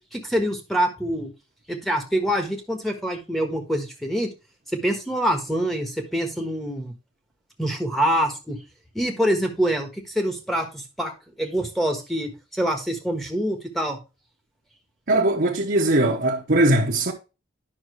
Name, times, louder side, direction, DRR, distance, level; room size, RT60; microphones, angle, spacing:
voice 1, 0.1-1.3 1.7-4.3 4.7-6.9 7.6-8.6 8.9-11.1 11.4-14.0, equal, ahead, 1.4 m, -25 dB
voice 2, 15.1-17.1, right 1 dB, 50° right, 1.1 m, -20 dB
9.9 x 5.9 x 3.1 m
head